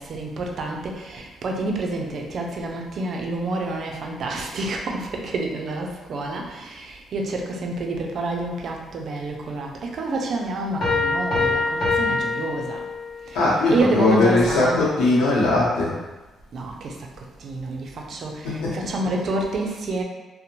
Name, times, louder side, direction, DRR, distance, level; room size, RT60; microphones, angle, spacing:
voice 1, 0.0-12.9 13.2-14.9 16.5-20.0, right 2 dB, 60° right, 1 dB, 0.4 m, -28 dB
sound 1, 10.8-13.3, left 3 dB, 50° left, 0.7 m, -24 dB
voice 2, 13.3-16.0 18.4-18.9, left 2 dB, 90° left, -7 dB, 0.7 m, -20 dB
2.5 x 2.0 x 2.9 m, 1.1 s
cardioid pair, 90°, 0 cm